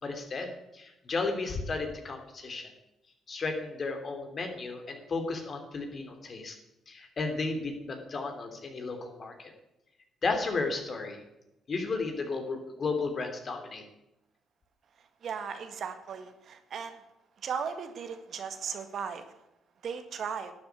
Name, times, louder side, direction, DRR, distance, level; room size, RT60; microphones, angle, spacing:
voice 1, 0.0-2.7 3.3-6.6 6.9-9.5 10.2-11.2 11.7-13.8, left 3 dB, 45° left, 5 dB, 3.2 m, -34 dB
voice 2, 15.2-17.0 17.4-19.3 19.8-20.5, right 6 dB, 60° right, 7 dB, 1.8 m, -36 dB
12.0 x 7.9 x 9.6 m, 0.89 s
cardioid pair, 90°, 0 cm